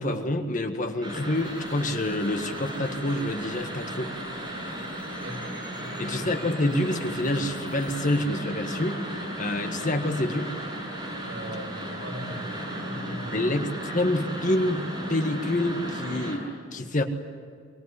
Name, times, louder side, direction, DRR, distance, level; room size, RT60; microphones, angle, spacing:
voice 1, 0.0-4.1 6.0-10.5 13.3-17.0, left 1 dB, 40° left, 5 dB, 1.7 m, -27 dB
sound 1, 1.0-16.3, right 1 dB, 20° right, 7.8 m, -35 dB
sound 2, 1.3-8.2, left 2 dB, 10° left, 6.2 m, -52 dB
voice 2, 5.1-5.4 5.8-6.3 11.3-13.5, equal, 80° right, 1 dB, 6.0 m, -40 dB
24.5 x 21.0 x 9.8 m, 2.1 s
head